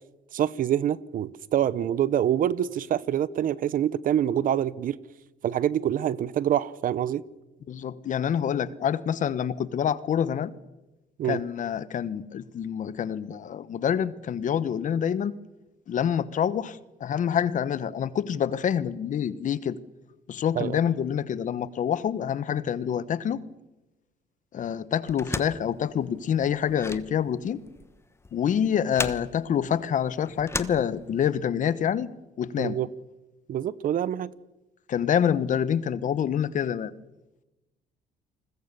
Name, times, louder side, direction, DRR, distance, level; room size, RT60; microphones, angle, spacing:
voice 1, 0.3-5.0 5.4-7.2 11.2-11.4 20.5-20.8 32.6-32.9 33.5-34.3, right 10 dB, 55° right, 0.9 m, -26 dB
voice 2, 7.7-10.5 11.3-15.3 15.9-19.8 20.3-23.4 24.5-27.6 28.3-32.1 32.4-32.8 34.9-36.9, left 8 dB, 50° left, 1.2 m, -27 dB
sound 1, 25.1-31.4, left 3 dB, 15° left, 1.3 m, -36 dB
29.0 x 21.5 x 6.9 m
cardioid pair, 110°, 17 cm